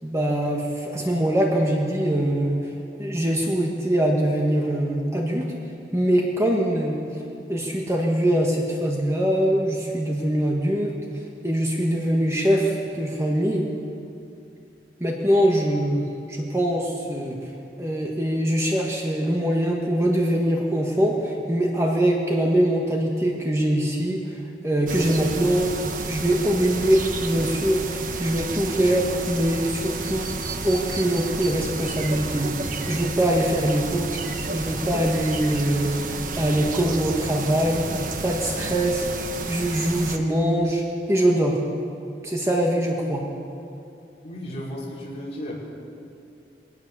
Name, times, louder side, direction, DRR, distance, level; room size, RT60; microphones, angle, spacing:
voice 1, 0.0-5.4 5.9-7.0 7.5-10.9 11.4-13.7 15.0-17.5 17.8-25.7 26.0-30.3 30.6-32.5 32.9-37.9 38.2-39.1 39.5-41.6 42.2-43.2, right 1 dB, 15° right, -1 dB, 1.7 m, -23 dB
sound 1, 24.9-40.2, right 3 dB, 50° right, 1.2 m, -31 dB
voice 2, 44.2-45.5, equal, 35° left, -5 dB, 5.4 m, -34 dB
22.5 x 18.5 x 7.0 m, 2.6 s
head